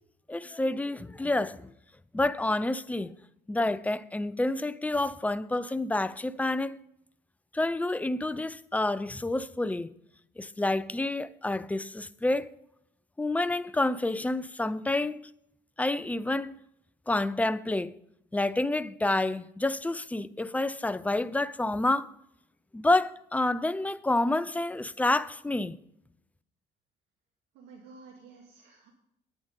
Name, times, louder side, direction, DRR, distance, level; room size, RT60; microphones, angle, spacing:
voice 1, 0.3-1.7 2.1-3.1 3.5-6.8 7.5-9.9 10.4-12.5 13.2-15.3 15.8-16.6 17.1-17.9 18.3-22.1 22.7-25.8, left 2 dB, 10° left, 0.4 m, -28 dB
voice 2, 27.5-28.9, right 4 dB, 85° right, 2.1 m, -51 dB
9.8 x 9.7 x 5.2 m
cardioid pair, 110°, 17 cm